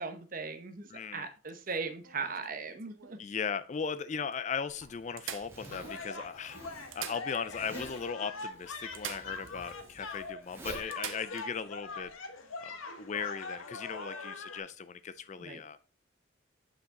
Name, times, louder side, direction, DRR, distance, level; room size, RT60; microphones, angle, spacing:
voice 1, 0.0-3.2 15.4-15.6, right 4 dB, 40° right, 7 dB, 0.9 m, -38 dB
voice 2, 0.9-1.3 3.2-12.1 12.6-15.8, left 6 dB, 35° left, 13 dB, 0.3 m, -38 dB
sound 1, 1.7-3.3 4.0-4.1 4.3-4.4 5.2-6.2 6.8-7.8 8.0-8.1 8.9-9.8 10.1-10.2 10.9-11.5 13.5-13.6, right 9 dB, 75° right, 0.8 m, -44 dB
Zipper (clothing), 4.7-12.1, right 2 dB, 10° right, 1.9 m, -50 dB
sound 2, 5.7-14.6, left 3 dB, 85° left, 1.1 m, -43 dB
7.8 x 5.7 x 3.7 m, 0.34 s
head